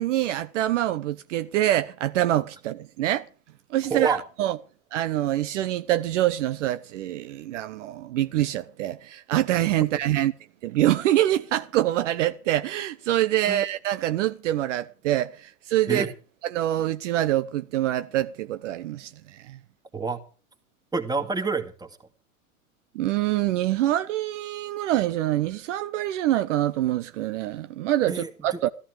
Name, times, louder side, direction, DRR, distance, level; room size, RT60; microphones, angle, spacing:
voice 1, 0.0-3.2 3.7-4.6 4.9-10.3 10.6-16.0 16.5-19.1 19.5-19.6 22.9-28.7, right 13 dB, 55° right, 0.8 m, -25 dB
voice 2, 3.9-4.2 13.5-13.6 15.9-16.1 19.9-20.2 20.9-22.0 28.1-28.6, right 4 dB, 10° right, 2.2 m, -28 dB
14.5 x 14.0 x 4.9 m
figure-of-eight pair, 90°, 43 cm